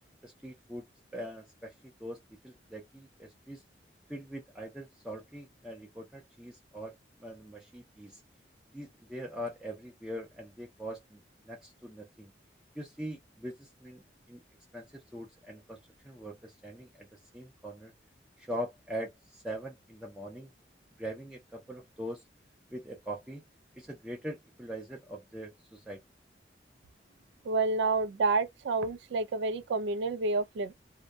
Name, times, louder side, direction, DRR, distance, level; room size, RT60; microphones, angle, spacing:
voice 1, 0.2-0.9 1.1-3.6 4.1-8.2 8.7-12.3 12.8-14.0 14.3-14.4 14.7-15.8 16.0-17.9 18.4-20.5 21.0-22.2 22.7-23.4 23.7-26.0, equal, 5° right, 0.4 m, -42 dB
voice 2, 27.5-30.7, right 3 dB, 80° right, 0.3 m, -29 dB
2.6 x 2.1 x 2.2 m
head